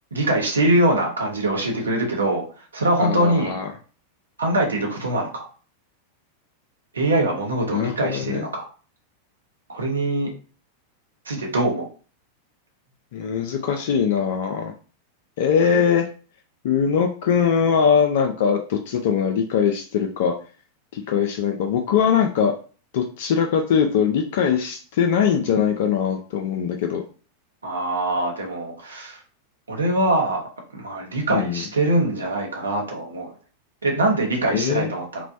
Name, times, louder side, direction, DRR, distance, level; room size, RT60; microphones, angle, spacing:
voice 1, 0.1-2.4 2.7-3.6 4.4-5.5 6.9-8.7 9.7-10.3 11.3-11.9 27.6-29.2 29.7-30.5 30.7-33.3 33.8-35.3, right 1 dB, 75° right, 0 dB, 0.8 m, -23 dB
voice 2, 3.0-3.7 7.7-8.5 13.1-14.7 15.4-16.1 16.6-20.3 20.9-22.5 22.9-27.0 31.3-31.6 34.5-34.9, left 7 dB, 55° left, 3 dB, 0.3 m, -21 dB
3.0 x 2.1 x 2.5 m, 0.38 s
figure-of-eight pair, 90°, 0 cm